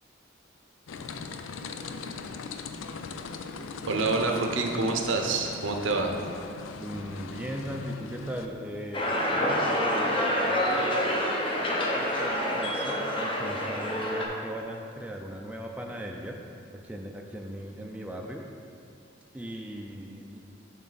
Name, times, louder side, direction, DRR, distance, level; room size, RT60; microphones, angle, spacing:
sound 1, 0.9-8.5, left 4 dB, 90° left, 0.4 m, -40 dB
voice 1, 3.9-6.1, right 3 dB, 80° right, 3 dB, 0.7 m, -27 dB
voice 2, 6.8-11.3 11.9-16.4 16.8-18.4 19.3-20.4, equal, 5° right, 1 dB, 0.4 m, -38 dB
sound 2, 8.9-14.3, equal, 25° left, 0.7 m, -27 dB
7.4 x 5.4 x 4.0 m, 2.4 s
head